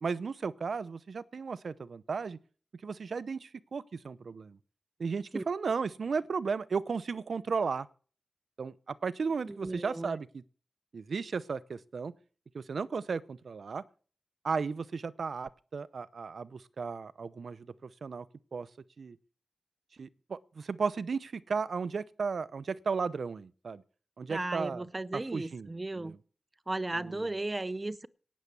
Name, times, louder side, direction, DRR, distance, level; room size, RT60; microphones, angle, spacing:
voice 1, 0.0-2.4 2.8-4.6 5.0-7.9 8.6-10.4 10.9-12.1 12.5-13.8 14.4-18.3 18.5-18.7 19.0-19.2 20.0-23.8 24.2-24.8 25.1-26.2 27.0-27.2, right 5 dB, 65° right, 0.7 m, -35 dB
voice 2, 9.5-10.2 24.3-26.2 26.7-28.1, right 2 dB, 25° right, 0.6 m, -35 dB
18.0 x 7.3 x 6.8 m
wide cardioid pair, 115°, 0 cm